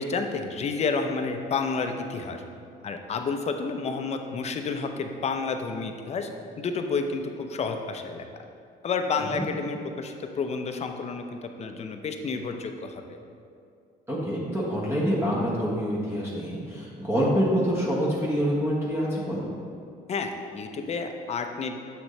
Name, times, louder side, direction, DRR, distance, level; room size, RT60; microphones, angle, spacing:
voice 1, 0.0-2.4 2.8-6.3 6.6-8.2 8.8-11.2 11.6-13.2 20.1-21.8, left 4 dB, 40° left, 6 dB, 0.6 m, -30 dB
voice 2, 14.1-19.5, equal, 15° right, -6 dB, 1.3 m, -26 dB
7.7 x 6.1 x 3.2 m, 2.4 s
cardioid pair, 110°, 17 cm